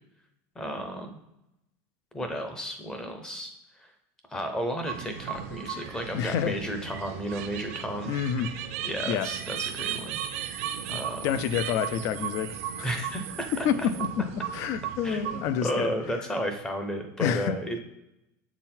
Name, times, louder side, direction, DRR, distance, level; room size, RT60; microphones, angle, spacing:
voice 1, 0.6-1.1 2.1-3.5 3.8-3.9 4.3-8.1 8.8-10.2 10.9-11.3 12.8-13.7 15.0-17.8, equal, 10° left, 5 dB, 0.7 m, -33 dB
sound 1, 4.9-15.7, right 9 dB, 75° right, 0.6 m, -36 dB
voice 2, 6.1-6.6 8.1-8.6 9.1-9.3 10.9-12.9 13.6-15.9 17.2-17.6, left 8 dB, 45° left, 14 dB, 0.4 m, -29 dB
7.1 x 4.0 x 4.3 m, 0.88 s
cardioid pair, 170°, 8 cm